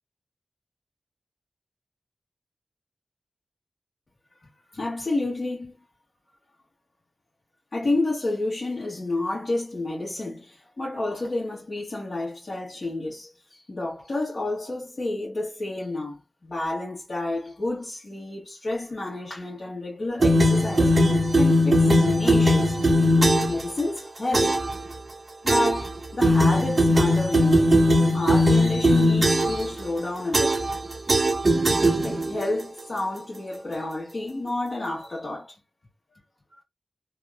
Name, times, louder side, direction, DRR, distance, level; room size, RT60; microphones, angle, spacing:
voice 1, 4.7-5.7 7.7-16.2 16.4-22.8 23.4-24.7 25.4-31.2 32.0-35.5 36.5-36.6, left 2 dB, 60° left, 1.3 m, -30 dB
sound 1, 20.2-23.6 24.3-24.7 25.5-25.9 26.2-29.7 30.3-30.8 31.1-32.4, equal, 55° right, 0.7 m, -19 dB
2.8 x 2.5 x 2.2 m
cardioid pair, 45°, 0 cm